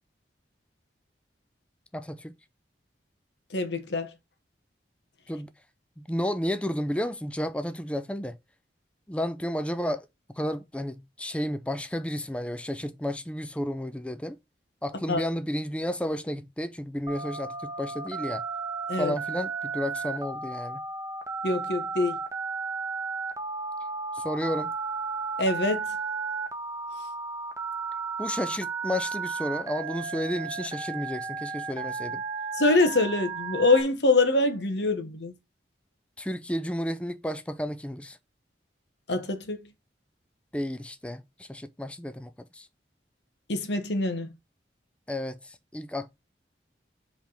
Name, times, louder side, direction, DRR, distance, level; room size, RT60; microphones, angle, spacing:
voice 1, 1.9-2.3 5.3-5.5 6.0-8.4 9.1-14.4 14.8-18.4 19.0-20.8 24.1-24.7 28.2-32.2 36.2-38.2 40.5-42.7 45.1-46.1, equal, 5° left, 0.4 m, -32 dB
voice 2, 3.5-4.1 15.1-15.3 18.9-19.1 21.4-22.2 25.4-25.8 32.6-35.3 39.1-39.6 43.5-44.3, left 2 dB, 75° left, 1.2 m, -24 dB
Telephone, 17.1-33.8, right 5 dB, 15° right, 0.8 m, -34 dB
5.0 x 3.5 x 5.6 m
head